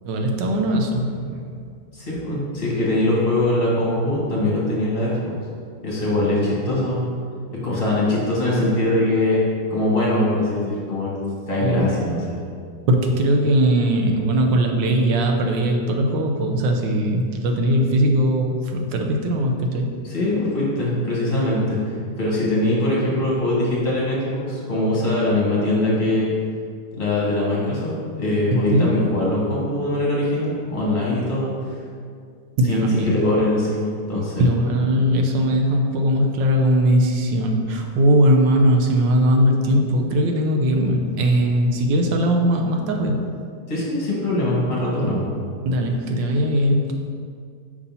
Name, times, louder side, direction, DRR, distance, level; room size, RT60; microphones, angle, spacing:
voice 1, 0.0-1.6 11.6-11.9 12.9-19.9 28.5-29.0 32.6-33.2 34.4-43.2 45.0-45.1 45.7-46.9, equal, 85° right, 3 dB, 1.5 m, -20 dB
voice 2, 1.9-5.3 5.8-7.0 7.6-9.4 9.7-11.1 11.5-12.4 20.1-21.8 22.2-26.3 26.9-31.5 32.7-34.5 43.7-45.3, left 1 dB, 30° left, -6 dB, 1.9 m, -22 dB
5.6 x 4.1 x 5.4 m, 2.2 s
omnidirectional pair, 1.9 m